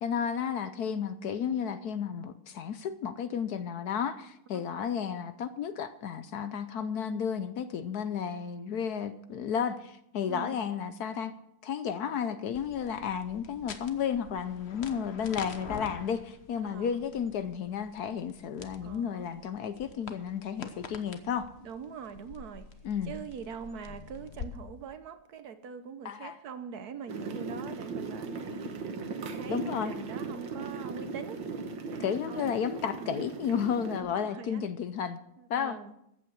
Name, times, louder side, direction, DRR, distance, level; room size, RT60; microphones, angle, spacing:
voice 1, 0.0-11.3 11.6-21.5 22.8-23.1 26.0-26.4 29.5-29.9 32.0-35.2 35.5-35.8, left 7 dB, 65° left, 11 dB, 1.1 m, -32 dB
voice 2, 7.1-7.5 10.3-10.7 14.9-15.1 16.6-17.0 18.8-19.3 21.6-22.7 23.0-31.4 31.9-32.6 32.9-33.2 34.0-34.6 35.4-36.0, right 6 dB, 60° right, 10 dB, 1.2 m, -43 dB
sound 1, 12.5-24.5, left 5 dB, 45° left, 1.0 m, -47 dB
sound 2, 27.1-34.0, right 4 dB, 90° right, 2.0 m, -38 dB
14.5 x 8.6 x 6.3 m, 0.79 s
omnidirectional pair, 2.0 m